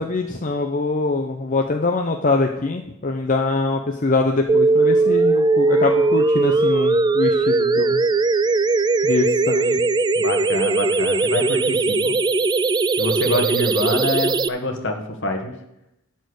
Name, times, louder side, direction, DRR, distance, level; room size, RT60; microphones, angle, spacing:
voice 1, 0.0-8.0 9.0-9.8, left 3 dB, 40° left, 3 dB, 0.7 m, -23 dB
sound 1, 4.5-14.5, right 3 dB, 20° right, 0.3 m, -19 dB
voice 2, 10.1-12.2 13.0-15.5, left 1 dB, 60° left, 4 dB, 1.7 m, -26 dB
12.0 x 4.5 x 8.0 m, 0.82 s
head